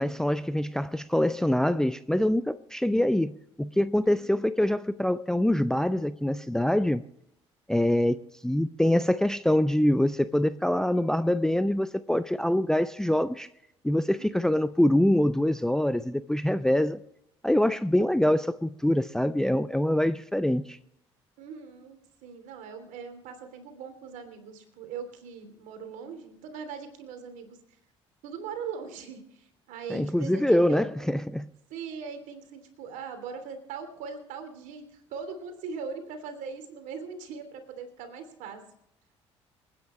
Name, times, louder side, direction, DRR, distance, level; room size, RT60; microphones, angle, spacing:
voice 1, 0.0-7.0 7.7-13.5 13.8-17.0 17.4-20.8 29.9-31.5, left 1 dB, 5° left, 0.5 m, -25 dB
voice 2, 4.0-4.4 14.4-14.5 21.4-27.6 28.2-31.2 31.7-38.6, right 6 dB, 60° right, 3.2 m, -40 dB
27.5 x 9.9 x 3.2 m
figure-of-eight pair, 55°, 15 cm